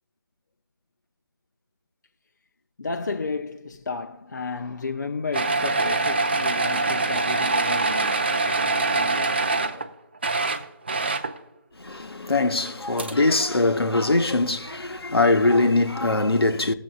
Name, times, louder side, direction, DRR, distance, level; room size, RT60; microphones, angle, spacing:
voice 1, 2.8-9.9, left 4 dB, 50° left, 0.6 m, -33 dB
sound 1, 5.3-9.9 10.2-11.4 12.7-12.8 13.0-13.1, right 3 dB, 25° right, 0.4 m, -24 dB
voice 2, 11.8-16.7, left 2 dB, 70° left, 0.9 m, -22 dB
20.0 x 7.5 x 2.4 m
figure-of-eight pair, 155°, 13 cm